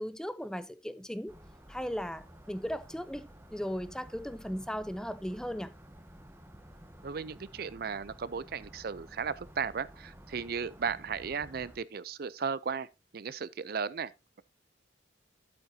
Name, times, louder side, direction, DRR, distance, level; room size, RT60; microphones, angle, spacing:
voice 1, 0.0-1.4 1.7-5.7, equal, 5° left, 0.6 m, -37 dB
sound 1, 1.3-11.8, equal, 15° right, 1.0 m, -53 dB
voice 2, 7.0-12.9 13.1-14.1, right 6 dB, 55° right, 0.5 m, -35 dB
11.0 x 8.5 x 2.7 m
head